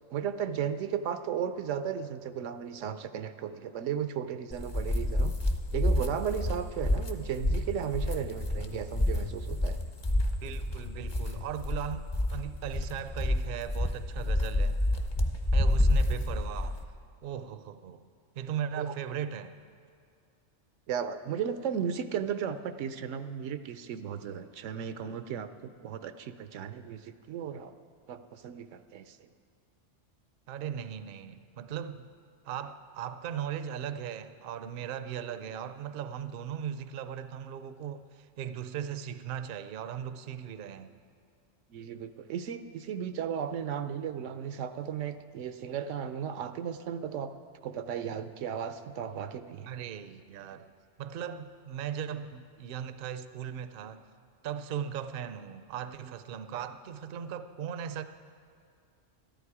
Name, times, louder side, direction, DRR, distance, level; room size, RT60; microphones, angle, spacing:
voice 1, 0.1-5.3 5.7-9.8 18.7-18.9 20.9-27.7 28.1-29.3 41.7-47.3 47.6-49.7, right 8 dB, 85° right, 10 dB, 1.0 m, -35 dB
sound 1, 4.5-16.8, left 1 dB, 25° left, 0.6 m, -29 dB
voice 2, 10.4-14.8 15.5-16.8 17.2-18.0 18.4-19.5 30.5-32.1 32.4-41.0 49.7-50.7 51.0-54.0 54.4-58.0, right 9 dB, 60° right, 11 dB, 0.6 m, -38 dB
13.5 x 11.5 x 4.8 m, 2.3 s
omnidirectional pair, 1.2 m